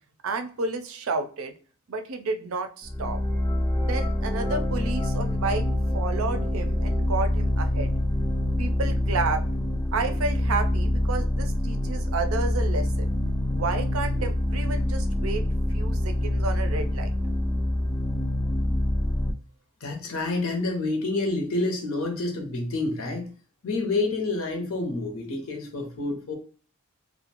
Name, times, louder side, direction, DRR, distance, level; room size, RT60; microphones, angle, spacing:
voice 1, 0.2-1.5 1.9-3.2 3.8-5.6 5.9-7.9 8.6-9.5 9.9-13.1 13.5-15.4 15.7-17.1, right 3 dB, 75° right, 7 dB, 0.4 m, -31 dB
sound 1, 2.8-19.3, left 1 dB, 15° left, 0.3 m, -26 dB
voice 2, 19.8-23.3 23.6-26.3, left 2 dB, 75° left, 3 dB, 0.8 m, -28 dB
2.5 x 2.2 x 2.8 m, 0.40 s
head